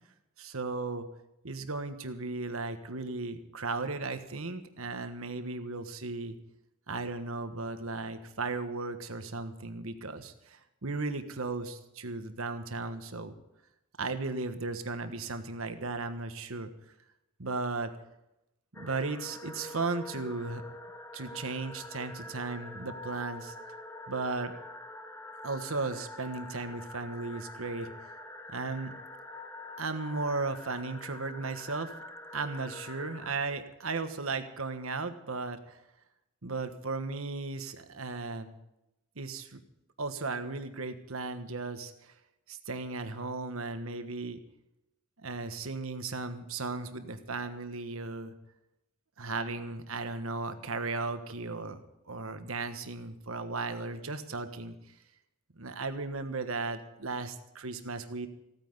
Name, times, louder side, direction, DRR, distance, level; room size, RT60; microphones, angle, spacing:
voice 1, 0.4-1.1 1.4-6.3 6.9-13.3 14.0-16.7 17.4-17.9 18.8-20.6 21.1-23.5 24.1-24.5 25.4-27.9 28.5-28.9 29.8-32.0 32.3-35.8 36.4-38.5 39.2-39.6 40.0-42.1 42.5-44.4 45.2-48.3 49.2-51.8 52.1-54.7 55.6-58.3, right 3 dB, 85° right, 9 dB, 1.4 m, -36 dB
sound 1, 18.7-33.3, left 2 dB, 10° left, 1.1 m, -46 dB
15.5 x 9.2 x 8.0 m, 0.88 s
head